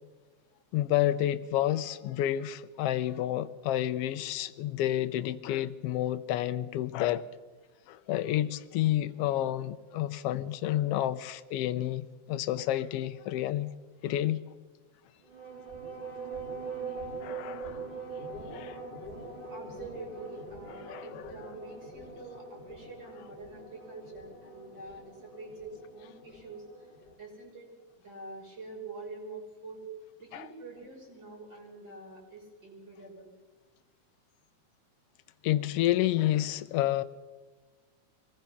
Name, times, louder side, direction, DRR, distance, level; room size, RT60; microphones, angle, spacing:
voice 1, 0.7-7.3 7.9-13.7 14.0-14.4 17.2-18.0 18.5-18.8 20.7-21.3 30.3-30.5 35.4-37.0, left 13 dB, 75° left, 1.4 m, -30 dB
sound 1, 15.2-27.1, right 3 dB, 20° right, 2.5 m, -43 dB
voice 2, 19.5-26.9 27.2-27.7 28.0-29.8 30.2-33.3, right 3 dB, 35° right, 6.4 m, -46 dB
23.5 x 19.0 x 5.8 m
omnidirectional pair, 3.5 m